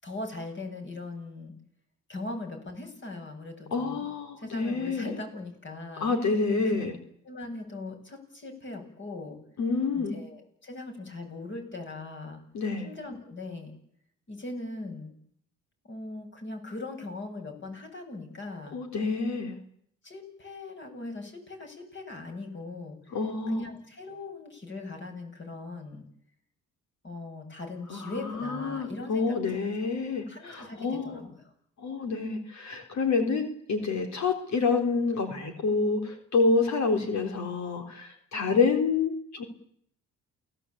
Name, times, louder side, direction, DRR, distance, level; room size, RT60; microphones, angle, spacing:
voice 1, 0.0-1.5 2.1-4.1 4.4-6.1 6.6-6.7 7.2-9.4 9.9-12.4 12.8-13.7 14.3-15.1 15.8-18.8 20.0-23.2 23.5-26.0 27.0-29.4 29.8-29.9 30.3-31.5, left 2 dB, 40° left, 4 dB, 8.0 m, -40 dB
voice 2, 3.7-5.1 6.0-6.9 9.6-10.2 12.5-12.9 18.7-19.6 23.1-23.6 27.9-31.2 31.8-39.4, left 4 dB, 65° left, 5 dB, 3.9 m, -28 dB
29.0 x 17.5 x 8.8 m, 0.68 s
cardioid pair, 90°, 30 cm